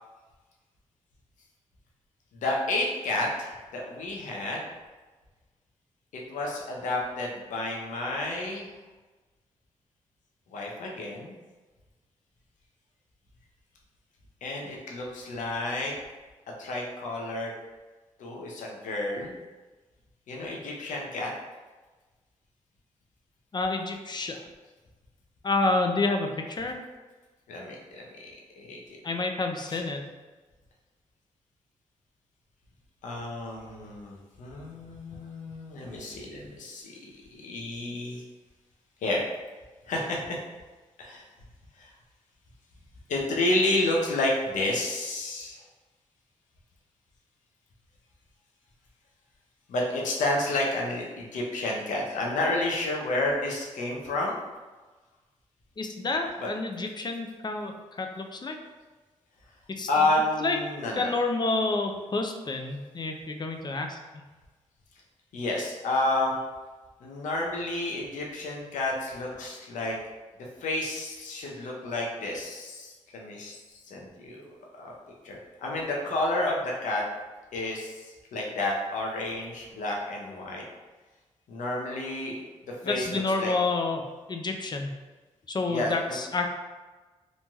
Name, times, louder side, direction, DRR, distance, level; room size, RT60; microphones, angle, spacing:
voice 1, 2.4-4.6 6.1-8.7 10.5-11.4 14.4-15.9 16.6-17.5 18.2-19.4 20.3-21.3 27.5-28.0 28.6-29.0 29.7-29.8 33.0-38.2 39.0-39.2 39.9-40.4 41.0-41.2 41.8-41.9 43.1-45.6 49.7-54.4 56.4-56.5 59.9-61.1 65.3-66.3 67.0-70.0 70.6-73.5 73.9-74.4 74.8-74.9 75.2-77.0 77.5-80.6 81.5-83.5 85.7-85.9, left 2 dB, 80° left, -1 dB, 0.6 m, -30 dB
voice 2, 23.5-24.4 25.4-26.8 29.0-30.0 55.8-58.6 59.7-59.9 60.4-60.6 60.9-64.0 82.8-84.9 85.5-86.5, left 3 dB, 35° left, 4 dB, 0.4 m, -29 dB
3.1 x 2.5 x 2.3 m, 1.3 s
supercardioid pair, 50°, 13 cm